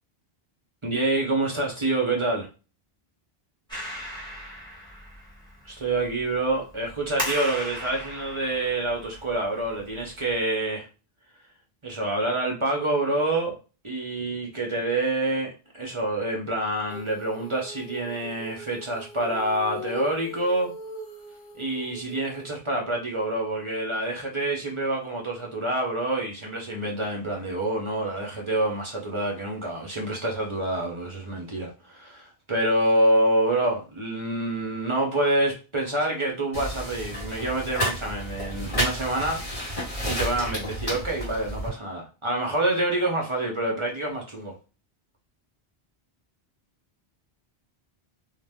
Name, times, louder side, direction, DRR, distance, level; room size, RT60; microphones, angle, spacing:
voice 1, 0.8-2.5 5.6-10.9 11.8-13.5 13.8-20.7 21.5-39.4 40.1-44.6, right 1 dB, 35° right, 0.5 m, -27 dB
Clapping, 3.7-10.4, equal, 5° left, 1.1 m, -38 dB
Female singing, 16.9-22.6, left 2 dB, 70° left, 0.9 m, -40 dB
sound 1, 36.5-41.7, equal, 35° left, 1.5 m, -31 dB
2.6 x 2.1 x 3.3 m
omnidirectional pair, 1.1 m